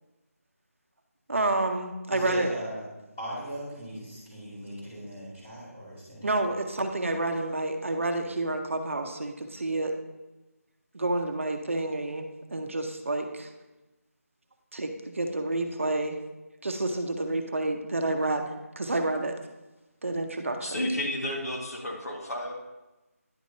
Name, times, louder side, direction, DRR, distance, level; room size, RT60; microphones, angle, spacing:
voice 1, 1.3-2.5 6.2-9.9 10.9-13.5 14.7-16.2 16.6-19.4 20.0-20.8, right 2 dB, 55° right, 5 dB, 0.7 m, -29 dB
voice 2, 2.1-2.8 3.2-6.3, equal, 10° left, -12 dB, 1.9 m, -38 dB
voice 3, 20.6-22.5, left 1 dB, 75° left, -1 dB, 1.8 m, -31 dB
10.0 x 6.1 x 2.8 m, 1.1 s
figure-of-eight pair, 175°, 8 cm